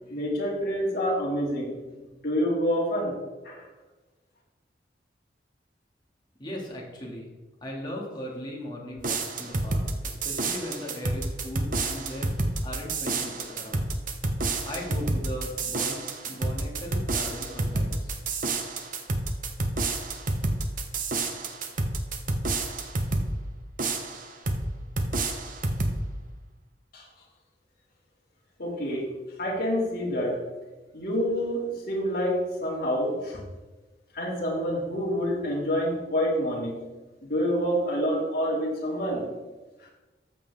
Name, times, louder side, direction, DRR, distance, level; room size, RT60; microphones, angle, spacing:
voice 1, 0.1-3.2 3.4-3.7 26.9-27.0 28.6-29.0 29.4-30.4 30.9-33.4 34.1-36.8 37.3-39.3, equal, 55° left, -5 dB, 2.7 m, -27 dB
voice 2, 6.4-7.3 7.6-12.4 12.6-13.9 14.7-18.2, equal, 25° left, -3 dB, 2.5 m, -38 dB
sound 1, 9.0-23.3 23.8-24.7 25.0-26.0, right 2 dB, 50° right, 1.0 m, -29 dB
13.5 x 7.1 x 3.7 m, 1.2 s
head